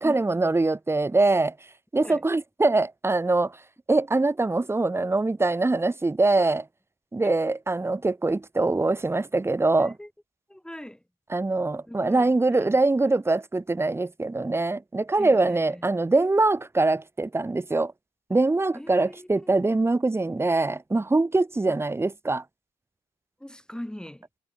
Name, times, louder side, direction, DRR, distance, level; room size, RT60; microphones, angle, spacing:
voice 1, 0.0-1.5 1.9-3.6 3.9-6.6 7.1-10.0 11.3-17.9 18.3-22.4, right 2 dB, 10° right, 0.7 m, -23 dB
voice 2, 9.8-10.1 10.5-11.0 11.8-12.8 15.2-15.9 18.3-18.4 18.7-19.4 21.7-21.8 23.4-24.3, left 1 dB, 5° left, 6.0 m, -41 dB
cardioid pair, 90°, 20 cm